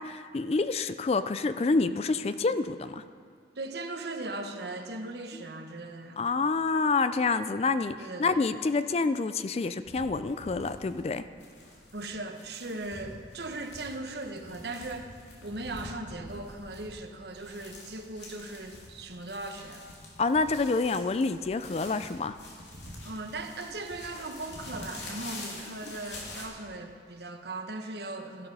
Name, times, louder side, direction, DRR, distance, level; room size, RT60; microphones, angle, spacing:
voice 1, 0.0-3.0 6.2-11.2 20.2-22.4, left 3 dB, 35° left, 13 dB, 0.3 m, -28 dB
voice 2, 3.6-6.2 8.0-8.4 11.9-15.2 15.4-19.8 23.0-28.5, right 2 dB, 70° right, 5 dB, 1.1 m, -38 dB
sound 1, 9.8-26.5, left 2 dB, 85° left, 2.8 m, -46 dB
14.0 x 12.0 x 5.4 m, 2.1 s
head